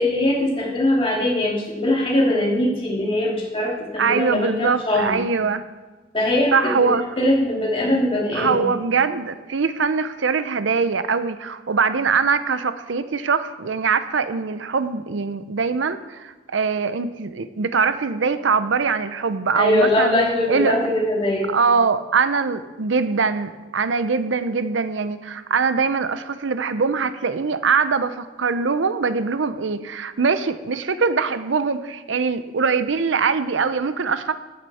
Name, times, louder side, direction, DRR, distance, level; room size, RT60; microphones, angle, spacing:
voice 1, 0.0-5.2 6.1-6.9 7.2-8.7 19.5-21.5, left 1 dB, 30° left, -3 dB, 2.6 m, -21 dB
voice 2, 4.0-5.6 6.5-7.0 8.3-20.2 20.5-20.8 21.5-34.3, right 5 dB, 80° right, 12 dB, 0.6 m, -22 dB
14.0 x 9.6 x 4.3 m, 1.2 s
head